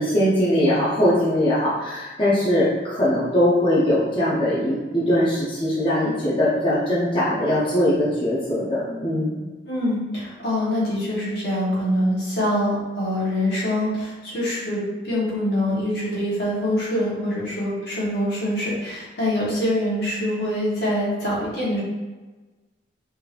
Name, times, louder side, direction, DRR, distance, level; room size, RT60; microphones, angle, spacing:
voice 1, 0.0-9.4, left 1 dB, 30° left, -9 dB, 0.7 m, -21 dB
voice 2, 9.6-21.8, left 1 dB, 60° left, -6 dB, 1.2 m, -24 dB
3.5 x 3.0 x 2.5 m, 1.2 s
head